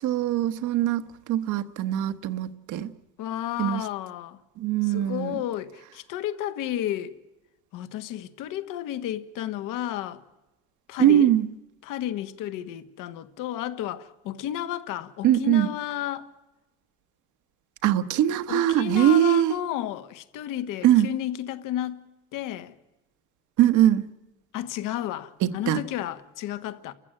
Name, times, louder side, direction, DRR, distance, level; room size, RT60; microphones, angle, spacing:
voice 1, 0.0-1.0 1.3-2.9 3.6-3.8 4.6-5.3 11.0-11.4 15.2-15.7 17.8-19.5 20.8-21.1 23.6-24.0 25.7-25.8, right 12 dB, 60° right, 1.3 m, -21 dB
voice 2, 3.2-4.4 4.8-7.2 7.7-10.2 10.9-11.3 11.8-16.3 18.5-22.0 22.3-22.7 24.5-26.9, left 12 dB, 70° left, 1.5 m, -32 dB
30.0 x 14.5 x 8.9 m
cardioid pair, 125°, 33 cm